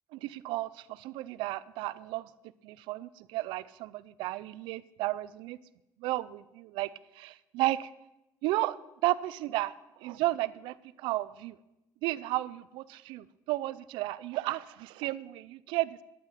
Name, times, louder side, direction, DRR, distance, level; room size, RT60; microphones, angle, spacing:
voice 1, 0.1-2.3 2.6-5.6 6.0-6.9 7.2-7.9 8.4-8.8 9.0-9.7 10.0-11.6 12.0-16.0, right 17 dB, 85° right, 19 dB, 0.4 m, -33 dB
11.5 x 9.3 x 5.7 m, 0.94 s
supercardioid pair, 75°, 8 cm